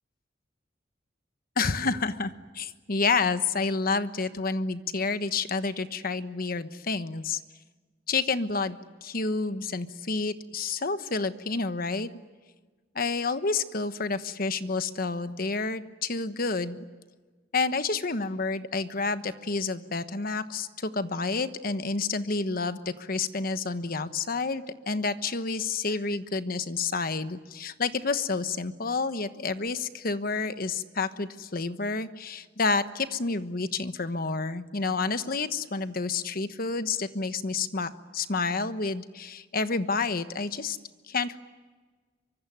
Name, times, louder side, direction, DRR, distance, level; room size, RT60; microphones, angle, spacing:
voice 1, 1.6-7.4 8.1-12.1 12.9-16.8 17.5-40.8 41.1-41.4, left 4 dB, 50° left, 11 dB, 1.2 m, -29 dB
25.0 x 24.0 x 9.5 m, 1.4 s
head